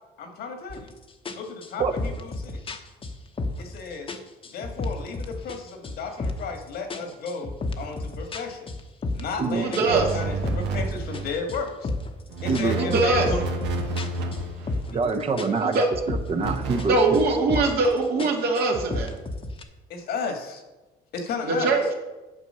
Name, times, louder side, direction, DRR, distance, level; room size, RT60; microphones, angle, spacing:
voice 1, 0.2-0.9 1.3-2.6 3.6-4.2 4.5-8.7 9.1-11.9 12.4-13.4 14.9-15.6 19.9-20.6 21.1-21.8, left 4 dB, 70° left, 5 dB, 1.8 m, -34 dB
sound 1, 0.7-0.9 1.3-3.8 4.1-5.6 5.8-6.6 6.9-9.4 9.7-12.2 12.5-15.1 15.4-16.9 17.1-17.9 18.2-19.6, left 2 dB, 30° left, 1.0 m, -33 dB
voice 2, 9.6-10.1 12.8-13.3 15.6-15.9 16.9-19.1 21.4-21.8, right 3 dB, 70° right, 0 dB, 2.1 m, -22 dB
sound 2, 9.9-11.4 12.3-14.9 16.3-17.5, right 3 dB, 85° right, 1.5 m, -30 dB
voice 3, 12.5-13.0 14.9-17.2, right 4 dB, 35° right, 5 dB, 0.8 m, -25 dB
8.9 x 6.1 x 5.5 m, 1.1 s
cardioid pair, 110°, 17 cm